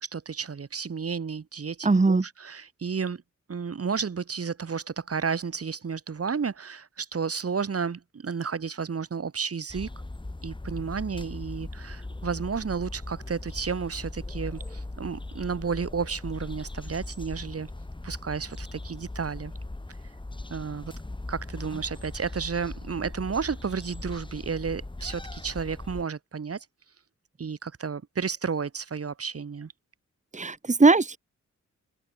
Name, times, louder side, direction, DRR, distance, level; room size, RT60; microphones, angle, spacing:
voice 1, 0.0-3.2 3.5-9.9 10.4-17.7 18.0-19.5 20.5-20.9 21.3-26.7 27.4-29.7, right 5 dB, 50° right, 3.4 m, -32 dB
voice 2, 1.8-2.2 30.3-31.2, right 3 dB, 25° right, 2.3 m, -20 dB
sound 1, 9.7-26.0, left 2 dB, 15° left, 4.9 m, -39 dB
open air
wide cardioid pair, 165°, 30 cm